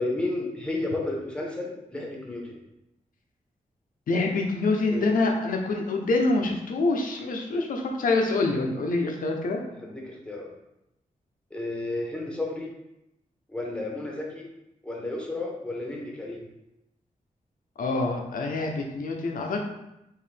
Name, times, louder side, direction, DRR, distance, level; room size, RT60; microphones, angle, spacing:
voice 1, 0.0-2.6 4.9-5.2 9.8-10.5 11.5-12.7 13.5-14.5 14.8-16.5, left 2 dB, 5° left, -2 dB, 1.0 m, -32 dB
voice 2, 4.1-9.6 17.8-19.6, left 3 dB, 80° left, 2 dB, 0.7 m, -26 dB
4.7 x 3.2 x 3.3 m, 0.87 s
wide cardioid pair, 135°, 14 cm